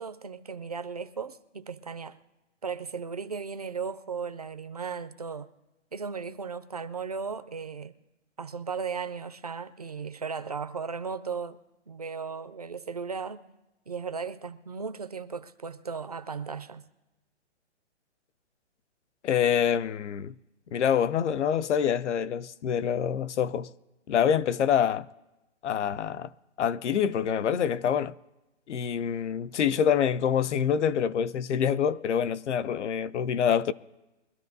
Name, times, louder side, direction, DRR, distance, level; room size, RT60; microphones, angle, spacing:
voice 1, 0.0-2.2 2.6-5.5 5.9-7.9 8.4-11.6 11.9-13.4 13.9-16.9, right 5 dB, 35° right, 0.4 m, -36 dB
voice 2, 19.2-20.3 20.7-23.7 24.1-25.1 25.6-26.3 26.6-28.1 28.7-33.7, left 8 dB, 75° left, 0.6 m, -26 dB
23.5 x 13.0 x 2.7 m
hypercardioid pair, 170°, 36 cm